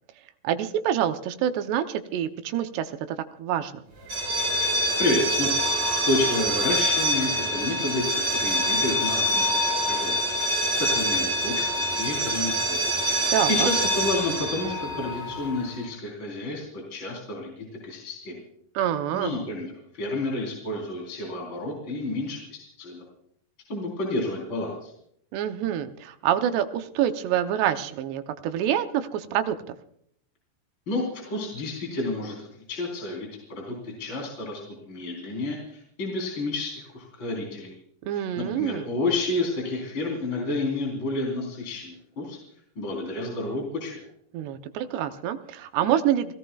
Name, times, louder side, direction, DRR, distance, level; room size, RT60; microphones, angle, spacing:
voice 1, 0.4-3.8 13.3-13.7 18.7-19.3 25.3-29.8 38.0-38.9 44.3-46.3, right 10 dB, 80° right, 8 dB, 2.9 m, -26 dB
sound 1, 4.0-15.7, equal, 40° right, 6.0 m, -25 dB
voice 2, 5.0-5.6 6.0-10.1 10.5-12.8 13.2-18.4 19.1-23.0 23.7-24.9 30.9-34.6 34.9-37.8 38.1-42.4 42.8-44.1, left 2 dB, 30° left, -2 dB, 4.4 m, -30 dB
29.5 x 17.5 x 2.4 m, 0.68 s
omnidirectional pair, 5.0 m